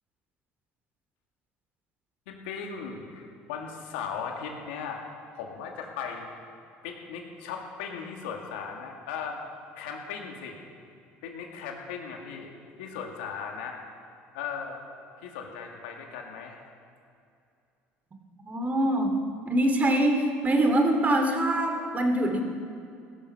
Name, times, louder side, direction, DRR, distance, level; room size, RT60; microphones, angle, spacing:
voice 1, 2.3-5.0 5.3-6.3 6.8-9.4 9.8-10.6 11.2-12.5 12.8-13.8 14.3-14.8 15.2-16.6, left 6 dB, 85° left, 1 dB, 2.2 m, -37 dB
voice 2, 18.4-19.2 19.4-22.4, right 1 dB, 30° right, 4 dB, 2.6 m, -24 dB
16.5 x 12.5 x 5.6 m, 2.5 s
supercardioid pair, 85°, 5 cm